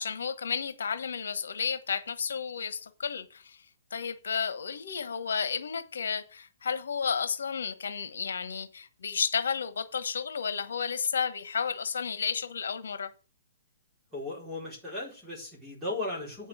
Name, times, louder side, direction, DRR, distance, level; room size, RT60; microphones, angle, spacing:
voice 1, 0.0-3.6 3.9-13.1, left 6 dB, 85° left, 1.2 m, -32 dB
voice 2, 14.1-16.5, left 2 dB, 5° right, 4.3 m, -36 dB
8.8 x 6.1 x 7.2 m
hypercardioid pair, 165°, 0 cm